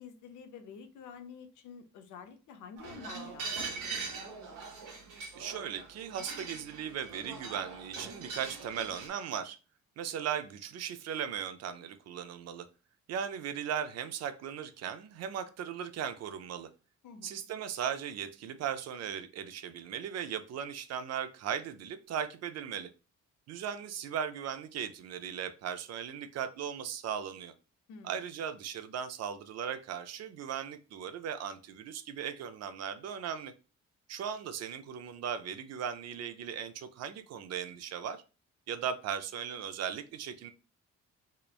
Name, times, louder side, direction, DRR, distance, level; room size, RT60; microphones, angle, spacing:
voice 1, 0.0-4.4 17.0-17.4 27.9-28.3, left 6 dB, 75° left, 9 dB, 0.5 m, -50 dB
sound 1, 2.8-9.1, right 4 dB, 90° right, 0.9 m, -42 dB
voice 2, 5.4-9.6 10.0-12.7 13.1-16.7 17.2-22.9 23.5-27.5 28.0-33.5 34.1-38.2 38.7-40.5, right 8 dB, 60° right, 10 dB, 0.4 m, -37 dB
3.0 x 2.1 x 2.3 m, 0.33 s
cardioid pair, 90°, 30 cm